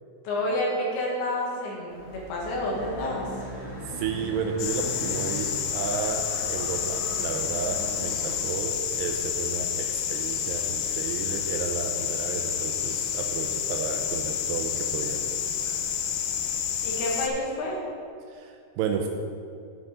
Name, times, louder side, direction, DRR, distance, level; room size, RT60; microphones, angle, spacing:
voice 1, 0.2-3.3 16.8-17.8, left 1 dB, 65° left, -3 dB, 3.1 m, -29 dB
sound 1, 1.9-8.5, equal, 40° left, 2.3 m, -39 dB
voice 2, 3.9-15.2 18.3-19.1, right 6 dB, 85° right, 3 dB, 2.5 m, -32 dB
sound 2, 4.6-17.3, left 8 dB, 85° left, 2.3 m, -29 dB
9.5 x 8.1 x 4.0 m, 2.4 s
omnidirectional pair, 5.2 m